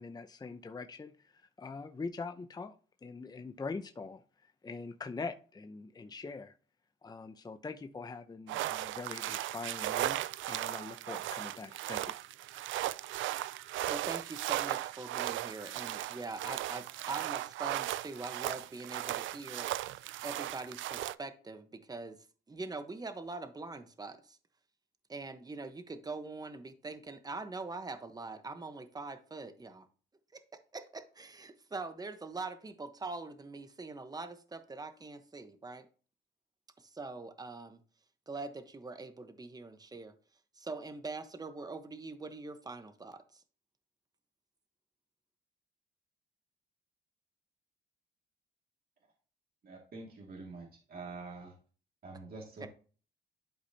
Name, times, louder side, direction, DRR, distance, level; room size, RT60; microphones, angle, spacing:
voice 1, 0.0-6.5 7.0-12.2, left 4 dB, 20° left, 0.7 m, -43 dB
sound 1, 8.5-21.1, right 14 dB, 75° right, 0.4 m, -37 dB
voice 2, 13.9-19.7 20.2-22.2 22.5-24.4 25.1-29.9 30.7-35.9 36.8-37.8 38.3-40.1 40.6-43.4 52.6-52.7, right 3 dB, 20° right, 1.0 m, -43 dB
voice 3, 49.6-51.6 52.0-52.7, right 3 dB, 50° right, 2.2 m, -46 dB
11.5 x 5.0 x 2.8 m
cardioid pair, 90°, 20 cm